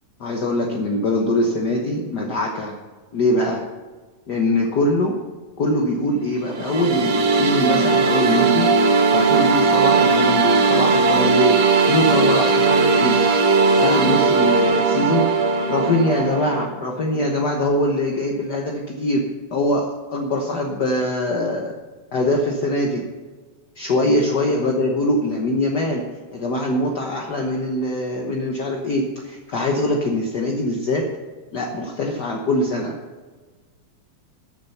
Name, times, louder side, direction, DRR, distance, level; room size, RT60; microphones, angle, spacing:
voice 1, 0.2-2.8 3.1-3.6 4.3-5.1 5.6-8.7 9.1-11.6 11.9-13.2 13.8-15.2 15.7-19.2 19.5-21.8 22.1-23.0 23.7-26.0 26.3-31.1 31.5-33.0, left 1 dB, 65° left, 1 dB, 1.0 m, -22 dB
sound 1, 6.5-16.7, right 4 dB, 65° right, 2.2 m, -18 dB
14.0 x 7.5 x 5.6 m, 1.4 s
omnidirectional pair, 3.4 m